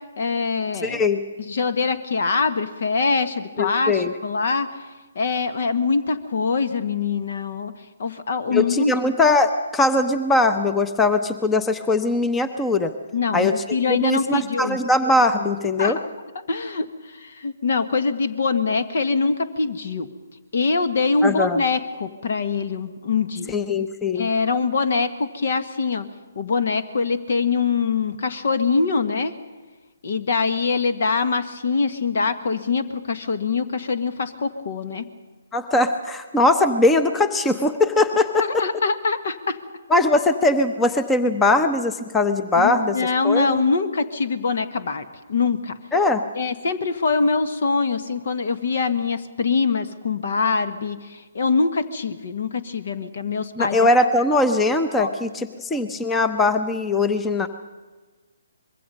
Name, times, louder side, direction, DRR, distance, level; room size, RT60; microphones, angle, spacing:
voice 1, 0.2-1.0 1.4-4.7 5.1-7.7 8.0-8.9 13.1-14.8 15.8-16.1 16.5-20.1 20.5-23.5 24.1-26.1 26.3-29.3 30.0-35.1 38.4-39.6 42.6-45.7 46.4-53.9 55.0-55.1, left 4 dB, 55° left, 11 dB, 1.4 m, -23 dB
voice 2, 0.8-1.2 3.6-4.1 8.5-12.9 13.3-16.0 21.2-21.6 23.5-24.3 35.5-38.6 39.9-43.6 45.9-46.2 53.6-57.5, left 2 dB, 10° left, 9 dB, 0.9 m, -20 dB
24.5 x 22.0 x 5.4 m, 1.3 s
figure-of-eight pair, 135°, 0 cm